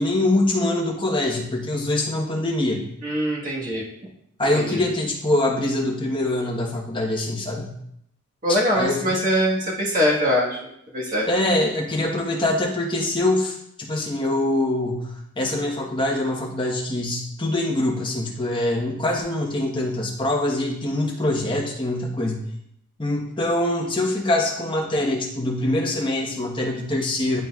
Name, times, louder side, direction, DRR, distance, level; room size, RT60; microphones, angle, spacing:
voice 1, 0.0-2.8 4.4-7.7 8.8-9.2 11.3-22.4 23.0-27.4, left 1 dB, 20° left, -3 dB, 1.1 m, -24 dB
voice 2, 3.0-3.8 4.5-4.8 8.4-10.6 10.9-11.3, equal, 40° right, -5 dB, 1.4 m, -22 dB
10.5 x 4.0 x 2.4 m, 0.74 s
head